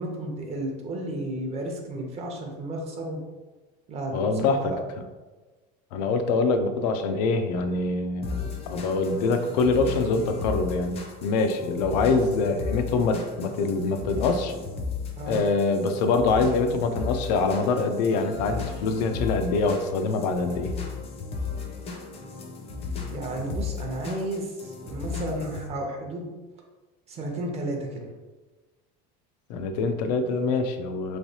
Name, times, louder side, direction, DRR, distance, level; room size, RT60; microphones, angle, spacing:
voice 1, 0.0-3.2 3.9-4.8 6.0-6.1 15.2-15.5 23.1-26.3 27.1-28.1, right 1 dB, 30° right, 1 dB, 0.7 m, -33 dB
voice 2, 4.1-4.7 5.9-14.5 15.3-20.7 29.5-31.2, left 3 dB, 85° left, 7 dB, 0.5 m, -24 dB
sound 1, 8.2-25.7, left 5 dB, 30° left, 0.5 m, -35 dB
3.2 x 3.0 x 2.7 m, 1.2 s
supercardioid pair, 135°, 21 cm